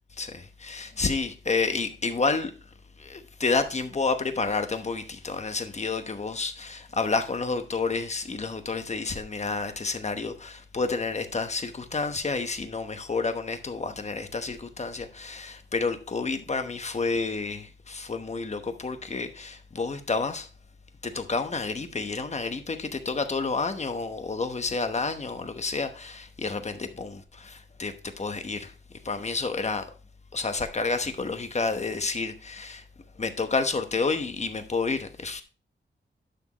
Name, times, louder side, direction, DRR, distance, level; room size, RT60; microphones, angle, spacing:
voice 1, 0.2-2.5 3.0-20.5 21.0-28.7 29.0-29.9 30.3-32.8 33.2-35.4, left 4 dB, 35° left, 1.0 m, -30 dB
11.5 x 6.3 x 3.0 m
wide cardioid pair, 125°, 20 cm